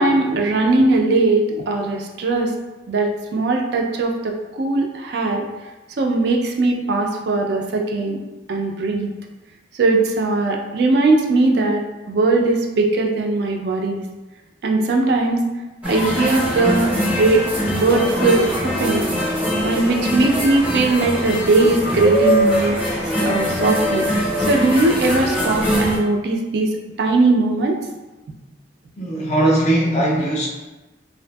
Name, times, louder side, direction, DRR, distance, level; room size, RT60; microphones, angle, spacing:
voice 1, 0.0-2.5 2.9-5.4 6.0-8.2 8.5-9.1 9.7-14.0 14.6-15.4 15.8-17.4 17.7-19.1 19.6-22.7 23.3-24.0 24.4-26.7 27.0-27.8, right 2 dB, 60° right, 1 dB, 0.3 m, -19 dB
sound 1, 15.8-26.0, equal, 5° right, 0.6 m, -22 dB
voice 2, 29.0-30.5, right 1 dB, 35° left, -2 dB, 0.4 m, -19 dB
2.6 x 2.5 x 2.2 m, 1.1 s
head